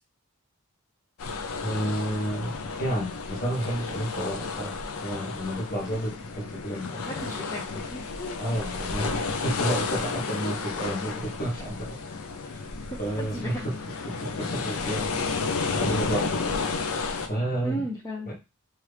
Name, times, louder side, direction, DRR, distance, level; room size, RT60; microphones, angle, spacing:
sound 1, 1.2-17.3, left 4 dB, 65° left, 0.5 m, -32 dB
voice 1, 1.6-2.5 2.8-7.3 8.4-12.0 12.4-12.7 13.0-15.1 15.7-16.6 17.3-17.9 18.2-18.3, right 1 dB, 40° left, -1 dB, 1.2 m, -31 dB
voice 2, 7.0-8.4 10.4-10.6 12.8-13.7 17.6-18.3, equal, 15° left, -5 dB, 0.5 m, -36 dB
3.0 x 2.5 x 3.2 m, 0.26 s
head